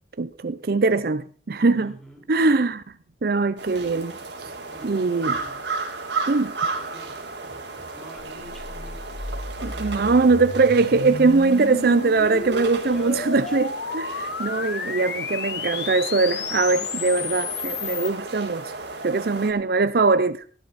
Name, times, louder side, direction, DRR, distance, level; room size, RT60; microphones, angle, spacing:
voice 1, 0.2-1.9 2.3-2.8 3.2-4.5 4.8-5.4 6.3-6.6 9.6-13.7 13.9-18.7 19.0-20.5, right 3 dB, 60° right, 0.6 m, -21 dB
voice 2, 1.7-2.3 4.7-5.6 6.6-10.3 11.6-12.0 12.7-13.6 14.2-14.6 19.2-19.7, equal, 5° left, 4.6 m, -46 dB
sound 1, 3.6-19.5, right 4 dB, 85° right, 3.3 m, -34 dB
sound 2, 8.2-18.1, left 4 dB, 70° left, 1.5 m, -32 dB
17.0 x 12.0 x 4.2 m
head